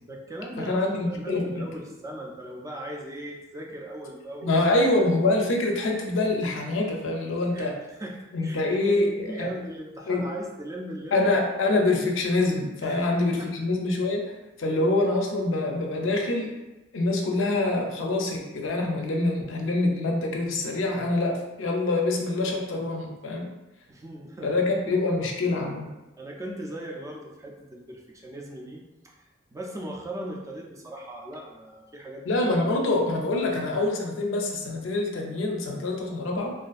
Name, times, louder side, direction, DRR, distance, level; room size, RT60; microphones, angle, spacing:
voice 1, 0.0-4.6 7.5-11.2 12.8-13.1 13.4-13.5 23.9-24.6 25.1-25.2 26.2-32.2, right 1 dB, 15° right, -1 dB, 0.3 m, -38 dB
voice 2, 0.6-1.6 4.4-7.7 8.3-9.5 10.1-10.3 11.1-14.2 14.6-16.5 16.9-23.5 24.4-25.9 32.3-36.5, left 2 dB, 85° left, 1 dB, 0.4 m, -25 dB
2.5 x 2.4 x 2.3 m, 1.0 s
head